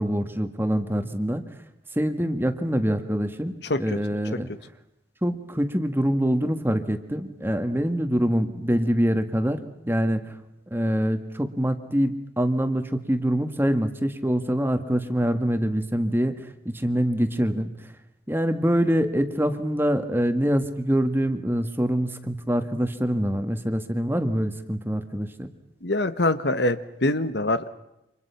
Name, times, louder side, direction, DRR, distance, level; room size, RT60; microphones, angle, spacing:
voice 1, 0.0-1.4 2.0-4.5 5.2-9.6 9.9-10.3 10.7-17.7 18.3-25.5, equal, 10° right, 8 dB, 1.7 m, -25 dB
voice 2, 25.8-27.7, left 2 dB, 60° left, 12 dB, 1.3 m, -24 dB
30.0 x 27.0 x 5.8 m, 0.85 s
head